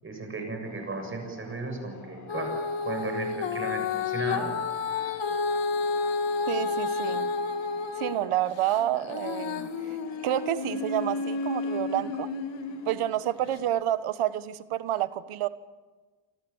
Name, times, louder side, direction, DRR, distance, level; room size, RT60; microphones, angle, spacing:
voice 1, 0.0-4.5, right 3 dB, 25° right, 5 dB, 7.4 m, -35 dB
sound 1, 0.6-13.7, left 3 dB, 35° left, 6.0 m, -48 dB
Female singing, 2.3-8.2 8.6-12.9 13.5-13.6, left 4 dB, 60° left, 2.5 m, -30 dB
voice 2, 6.5-7.3 8.0-10.0 10.2-12.3 12.8-15.5, right 12 dB, 80° right, 13 dB, 1.5 m, -29 dB
29.0 x 25.5 x 7.3 m, 1.3 s
cardioid pair, 155°, 49 cm